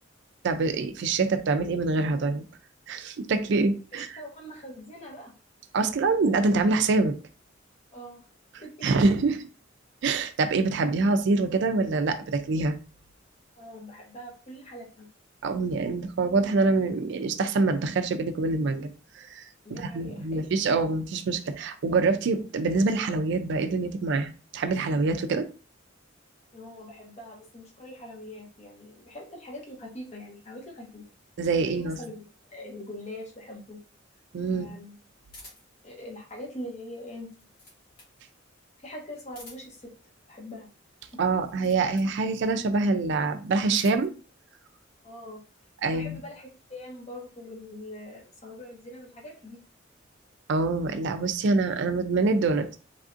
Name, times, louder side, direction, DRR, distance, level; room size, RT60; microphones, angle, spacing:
voice 1, 0.4-2.4 2.9-4.1 5.7-7.1 8.8-9.4 10.0-12.7 15.4-18.9 19.2-25.5 31.4-32.0 34.3-34.7 41.2-44.1 45.8-46.2 50.5-52.8, right 3 dB, 60° right, 8 dB, 0.4 m, -25 dB
voice 2, 3.9-5.3 7.9-8.2 8.6-9.0 13.6-15.1 19.6-20.4 26.5-31.0 31.6-33.8 34.5-35.0 35.8-37.3 38.8-39.9 40.3-40.7 45.0-45.4 45.8-49.6, left 1 dB, 35° left, -1 dB, 0.9 m, -42 dB
sound 1, 35.3-35.8 37.1-38.2 39.2-39.9 41.3-42.2 43.4-44.2, left 1 dB, 50° left, 1.4 m, -50 dB
3.3 x 2.5 x 2.4 m, 0.35 s
head